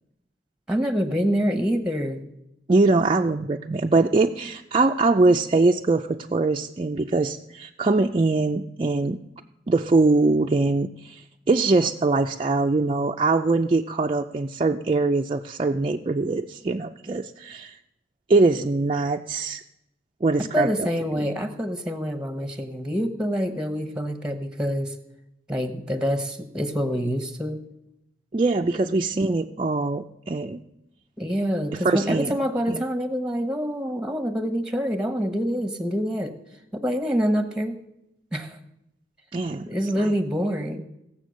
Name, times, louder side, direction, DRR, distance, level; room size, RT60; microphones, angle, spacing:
voice 1, 0.7-2.2 20.5-25.0 25.5-27.6 31.2-36.4 36.7-37.8 38.3-38.6 39.5-40.8, equal, 5° right, 8 dB, 0.9 m, -26 dB
voice 2, 2.7-9.2 9.7-17.8 18.3-19.6 20.2-20.9 21.2-21.3 28.3-30.6 31.7-32.3 32.7-32.8 39.3-39.7 40.0-40.1, right 3 dB, 30° right, 2 dB, 0.4 m, -22 dB
17.5 x 7.4 x 6.3 m, 0.86 s
head